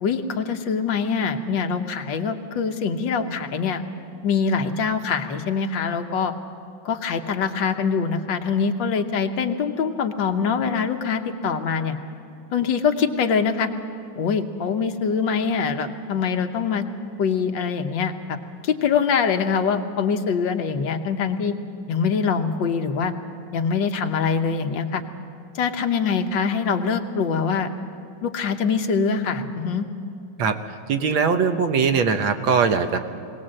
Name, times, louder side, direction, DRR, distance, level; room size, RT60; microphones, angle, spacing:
voice 1, 0.0-3.8 4.2-6.3 6.9-12.0 12.5-13.7 14.2-16.9 17.2-18.1 18.6-21.6 21.9-23.1 23.5-25.0 25.6-27.7 28.2-29.9, left 6 dB, 75° left, 6 dB, 1.7 m, -24 dB
voice 2, 30.9-33.0, right 5 dB, 90° right, 7 dB, 1.8 m, -20 dB
21.0 x 18.5 x 7.7 m, 2.5 s
omnidirectional pair, 2.1 m